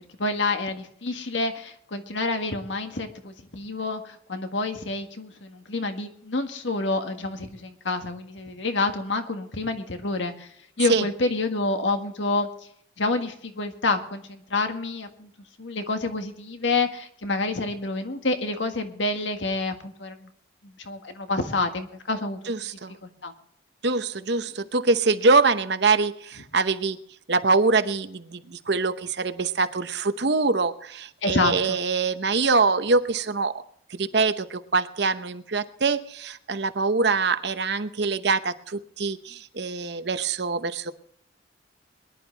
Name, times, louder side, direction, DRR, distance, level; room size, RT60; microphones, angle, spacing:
voice 1, 0.2-10.5 10.8-12.5 13.0-15.3 15.6-20.3 20.8-22.4 23.0-23.3 31.2-31.8, left 3 dB, 80° left, 6 dB, 1.7 m, -28 dB
voice 2, 22.5-22.9 23.8-27.0 27.3-33.5 34.0-40.9, right 4 dB, 60° right, 11 dB, 0.9 m, -24 dB
22.0 x 11.0 x 3.4 m, 0.66 s
head